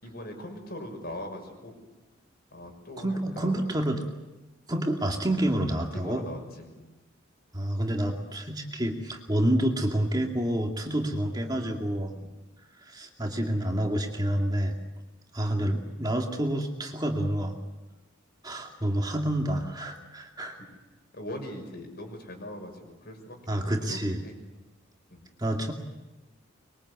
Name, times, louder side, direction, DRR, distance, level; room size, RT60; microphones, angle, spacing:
voice 1, 0.0-1.8 2.5-3.6 5.9-6.9 12.2-12.3 14.9-15.0 20.6-20.7 21.1-24.3 25.1-25.2, left 1 dB, 50° left, 4 dB, 6.2 m, -41 dB
voice 2, 3.0-4.0 4.7-6.2 7.5-12.1 12.8-14.8 15.3-17.5 18.4-20.6 23.5-24.2 25.4-25.7, right 1 dB, 20° right, 2 dB, 2.3 m, -28 dB
24.5 x 23.0 x 8.4 m, 1.1 s
head